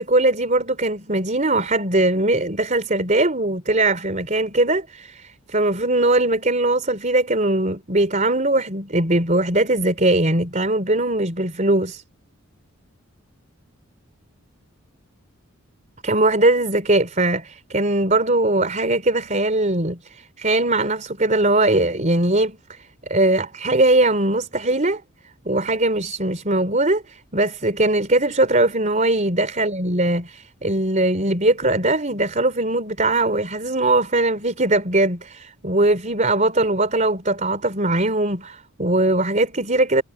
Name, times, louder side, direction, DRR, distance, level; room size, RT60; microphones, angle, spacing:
voice 1, 0.0-12.0 16.0-25.0 25.4-40.0, right 2 dB, 35° right, 3.9 m, -20 dB
head